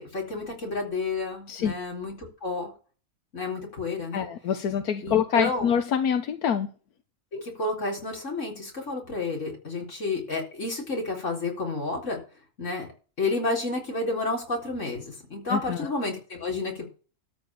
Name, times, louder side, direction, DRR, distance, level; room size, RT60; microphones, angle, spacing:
voice 1, 0.0-2.7 3.3-4.3 5.0-5.7 7.3-12.2 12.6-12.9 13.2-16.8, left 3 dB, 50° left, 4.4 m, -30 dB
voice 2, 4.1-6.7 15.5-15.9, left 8 dB, 85° left, 1.5 m, -25 dB
13.0 x 4.5 x 8.6 m
omnidirectional pair, 1.6 m